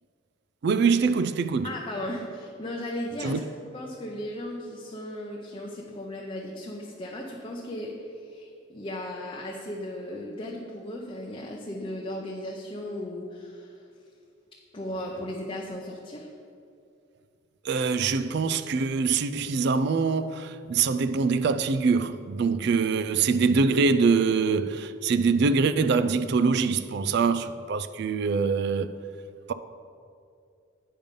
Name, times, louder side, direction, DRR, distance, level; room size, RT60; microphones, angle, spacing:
voice 1, 0.6-1.7 3.2-3.4 17.6-28.9, right 5 dB, 55° right, 0.3 m, -24 dB
voice 2, 1.6-3.4 3.7-13.9 14.7-16.3, left 1 dB, 25° left, 0.6 m, -36 dB
8.8 x 5.3 x 5.2 m
head